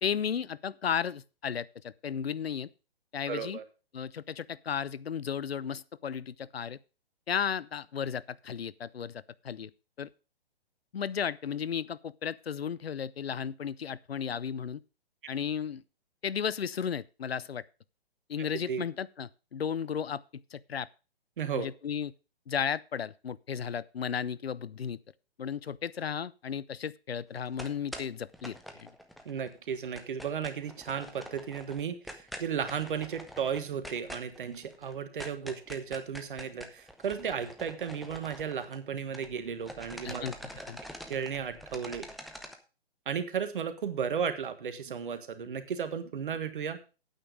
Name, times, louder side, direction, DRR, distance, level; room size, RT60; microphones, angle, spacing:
voice 1, 0.0-2.7 3.1-3.6 3.9-6.8 7.3-9.7 10.0-10.1 10.9-14.8 15.3-15.8 16.2-17.6 18.3-20.9 21.5-22.1 22.5-25.0 25.4-28.5 28.8-28.9 40.0-40.4 40.7-40.8, left 7 dB, 80° left, 0.6 m, -34 dB
voice 2, 3.3-3.6 18.5-18.8 21.4-21.7 29.2-40.2 41.1-42.1 43.1-46.8, right 7 dB, 55° right, 1.5 m, -34 dB
sound 1, 27.4-29.5 29.7-39.4 39.6-42.5, equal, ahead, 0.5 m, -45 dB
9.0 x 8.9 x 5.1 m
figure-of-eight pair, 130°, 30 cm